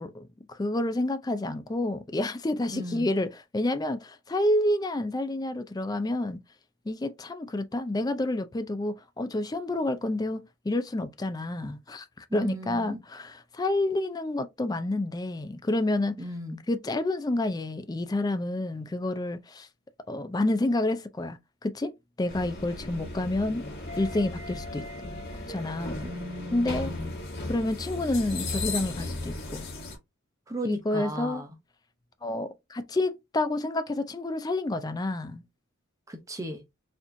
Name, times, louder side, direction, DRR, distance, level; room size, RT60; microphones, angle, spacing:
voice 1, 0.0-6.4 6.9-16.1 16.7-19.7 20.1-21.9 22.2-23.6 24.0-25.2 25.5-26.0 26.5-26.9 27.5-29.7 30.6-31.4 32.2-35.4, left 1 dB, 15° left, 0.4 m, -29 dB
voice 2, 2.7-3.1 12.3-13.0 16.2-16.6 26.0-27.1 30.5-31.5 36.1-36.6, right 1 dB, 15° right, 0.8 m, -36 dB
sound 1, 22.3-30.0, left 2 dB, 45° left, 1.9 m, -36 dB
4.2 x 2.9 x 2.6 m
head